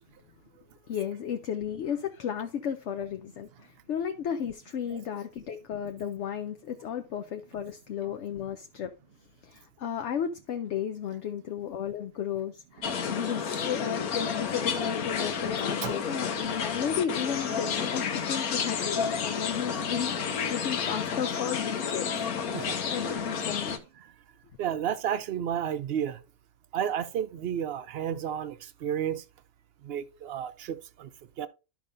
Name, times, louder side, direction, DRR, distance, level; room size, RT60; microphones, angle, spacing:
voice 1, 0.9-9.0 9.4-22.6 22.8-23.8, left 8 dB, 60° left, 0.9 m, -34 dB
sound 1, 12.8-23.8, left 6 dB, 90° left, 1.4 m, -31 dB
voice 2, 24.6-26.2 26.7-29.2 29.8-31.1 31.4-31.5, right 9 dB, 55° right, 0.7 m, -32 dB
12.5 x 5.1 x 2.6 m
omnidirectional pair, 1.5 m